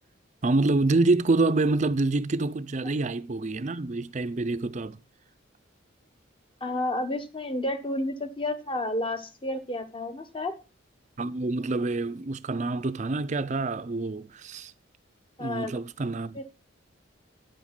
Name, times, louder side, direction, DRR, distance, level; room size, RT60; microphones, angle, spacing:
voice 1, 0.4-5.0 11.2-14.7 15.4-16.4, right 2 dB, 35° right, 0.5 m, -26 dB
voice 2, 6.6-10.5 15.4-15.7 16.3-16.4, left 1 dB, 25° left, 1.1 m, -31 dB
9.0 x 7.2 x 5.9 m
head